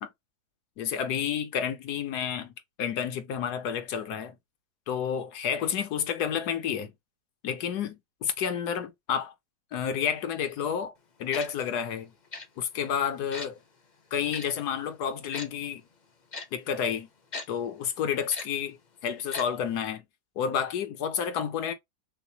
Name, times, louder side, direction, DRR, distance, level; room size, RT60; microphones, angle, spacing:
voice 1, 0.8-2.5 2.8-4.4 4.9-6.9 7.4-9.3 9.7-10.9 11.2-12.1 12.6-13.6 14.1-15.8 16.5-17.1 17.5-18.8 19.0-20.0 20.4-21.7, left 8 dB, 75° left, 1.3 m, -30 dB
Tick-tock, 11.3-11.5 12.3-12.5 13.3-13.5 14.3-14.4 15.3-15.5 16.3-16.5 17.3-17.5 18.3-18.5 19.3-19.5 19.7-19.8, left 4 dB, 40° left, 0.7 m, -37 dB
5.9 x 2.1 x 2.8 m
omnidirectional pair, 1.7 m